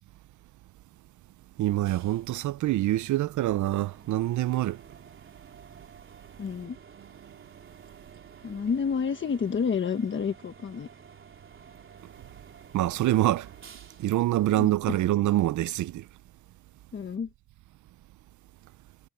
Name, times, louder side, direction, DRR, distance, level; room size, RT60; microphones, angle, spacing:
voice 1, 1.6-4.8 12.7-13.5 14.0-16.0, right 14 dB, 70° right, 0.6 m, -25 dB
sound 1, 1.9-15.4, right 6 dB, 40° right, 3.6 m, -52 dB
voice 2, 6.4-6.8 8.4-10.9 14.5-15.0 16.9-17.3, left 6 dB, 40° left, 1.3 m, -29 dB
cardioid pair, 130°, 31 cm